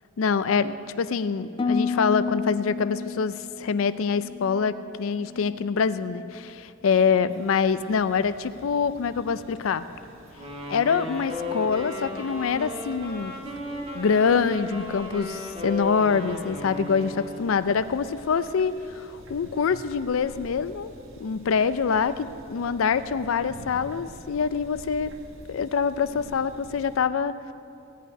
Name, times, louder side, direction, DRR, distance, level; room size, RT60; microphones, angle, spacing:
voice 1, 0.2-9.8 10.7-13.3 13.9-20.9 21.2-25.1 25.5-27.5, left 6 dB, 90° left, 13 dB, 0.4 m, -25 dB
Harp, 1.6-5.7 6.0-6.5 7.0-7.4, left 5 dB, 25° left, 0.3 m, -32 dB
sound 1, 7.3-27.0, right 1 dB, 85° right, 1.4 m, -48 dB
Wind instrument woodwind instrument, 10.4-17.6, left 2 dB, 30° right, 1.8 m, -35 dB
17.0 x 5.6 x 9.5 m, 2.7 s
head